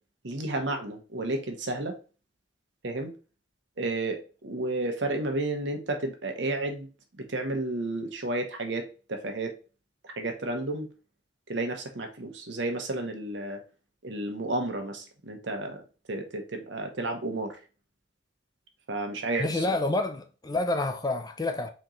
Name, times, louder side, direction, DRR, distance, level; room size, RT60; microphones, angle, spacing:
voice 1, 0.2-1.9 2.8-3.1 3.8-6.9 7.2-9.5 10.0-10.9 11.5-13.6 14.0-15.8 16.1-17.6 18.9-19.8, right 2 dB, 75° right, 1.0 m, -32 dB
voice 2, 19.4-21.7, left 2 dB, 20° left, 0.5 m, -28 dB
4.2 x 3.0 x 3.8 m
head